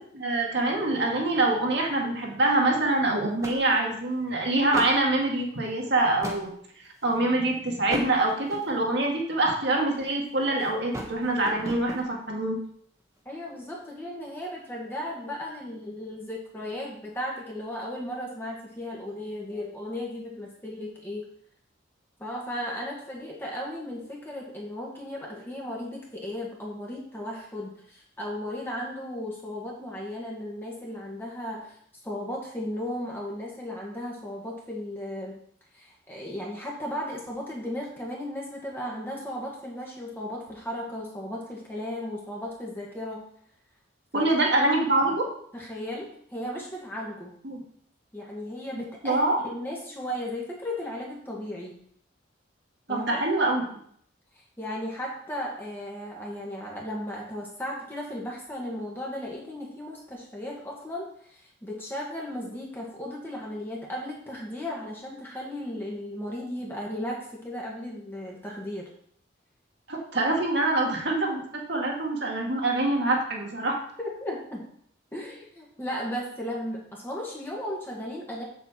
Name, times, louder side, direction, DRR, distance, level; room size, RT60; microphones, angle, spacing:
voice 1, 0.1-6.5 7.0-12.6 44.1-45.2 47.4-47.6 49.0-49.4 52.9-53.6 69.9-71.4 71.7-73.7, right 2 dB, 60° right, 0 dB, 2.0 m, -25 dB
sound 1, 2.8-3.0 3.4-4.1 4.6-5.1 5.7-6.5 7.1-7.3 7.8-8.9 9.6-10.3 10.6-12.1, equal, 15° right, 1.3 m, -37 dB
voice 2, 13.3-21.2 22.2-31.7 32.0-35.3 35.7-43.2 44.1-44.3 45.5-47.3 48.1-51.7 52.9-53.2 54.6-68.9 74.0-74.6 75.1-78.4, left 1 dB, 10° left, -3 dB, 1.7 m, -35 dB
7.8 x 7.4 x 4.4 m, 0.64 s
head